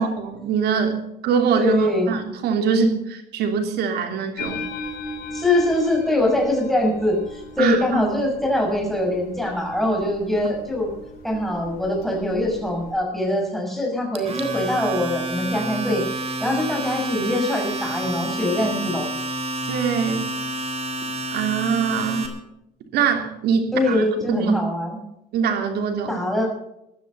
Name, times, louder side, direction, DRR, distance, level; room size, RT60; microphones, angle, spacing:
voice 1, 0.0-4.7 7.6-8.0 19.7-20.3 21.3-22.3 22.9-24.6 25.3-26.2, right 6 dB, 75° right, 5 dB, 3.2 m, -23 dB
voice 2, 1.5-2.1 5.3-10.9 11.2-16.0 16.4-19.1 23.7-25.0 26.1-26.5, left 1 dB, ahead, 0 dB, 6.1 m, -23 dB
sound 1, 4.4-13.0, left 2 dB, 65° left, 5.1 m, -38 dB
Domestic sounds home sounds, 14.1-22.3, right 2 dB, 35° right, 3.7 m, -29 dB
16.0 x 12.5 x 5.5 m, 0.85 s
cardioid pair, 110°, 17 cm